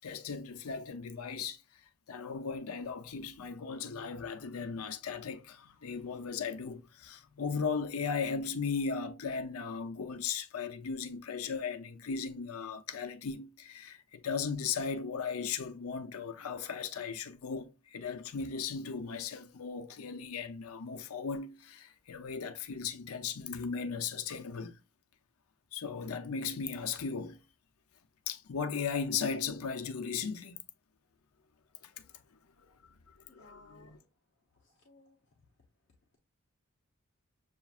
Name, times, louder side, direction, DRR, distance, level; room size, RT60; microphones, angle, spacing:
voice 1, 0.0-1.6 2.1-24.7 25.7-27.4 28.3-30.6 31.8-32.1 32.7-34.0, left 5 dB, 90° left, 0.6 m, -37 dB
voice 2, 33.3-34.0 34.6-35.2, left 2 dB, 55° left, 0.8 m, -59 dB
6.9 x 2.5 x 2.4 m
head